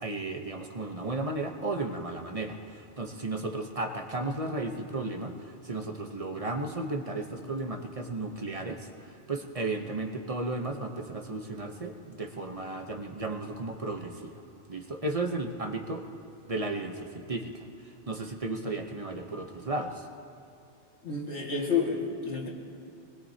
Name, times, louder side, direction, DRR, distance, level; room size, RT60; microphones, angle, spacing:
voice 1, 0.0-14.4 14.7-16.1 16.5-20.1, right 2 dB, 35° right, 3 dB, 0.9 m, -34 dB
voice 2, 21.0-22.5, left 5 dB, 85° left, -2 dB, 2.2 m, -29 dB
23.5 x 20.0 x 2.8 m, 2.6 s
omnidirectional pair, 1.1 m